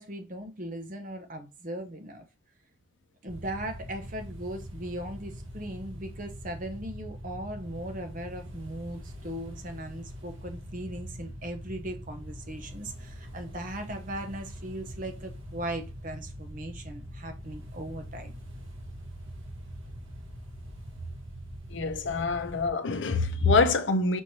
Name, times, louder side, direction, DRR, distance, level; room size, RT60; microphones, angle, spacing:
voice 1, 0.0-2.3 3.2-18.4, right 1 dB, 40° right, 0.7 m, -38 dB
sound 1, 3.3-22.7, equal, 70° right, 1.2 m, -43 dB
voice 2, 21.7-24.2, left 3 dB, 60° left, 0.6 m, -25 dB
6.2 x 3.1 x 2.8 m
head